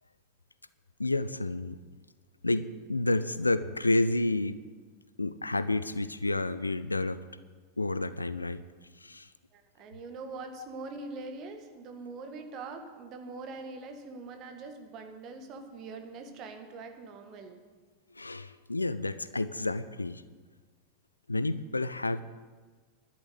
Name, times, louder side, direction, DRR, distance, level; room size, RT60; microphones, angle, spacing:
voice 1, 1.0-1.8 2.4-4.6 5.2-7.2 7.8-8.6 9.0-9.3 18.1-20.2 21.3-22.2, left 2 dB, 80° left, 15 dB, 0.6 m, -30 dB
voice 2, 8.3-8.6 9.5-17.6, right 3 dB, 35° right, 6 dB, 1.9 m, -43 dB
12.0 x 10.5 x 8.1 m, 1.4 s
figure-of-eight pair, 90°, 0 cm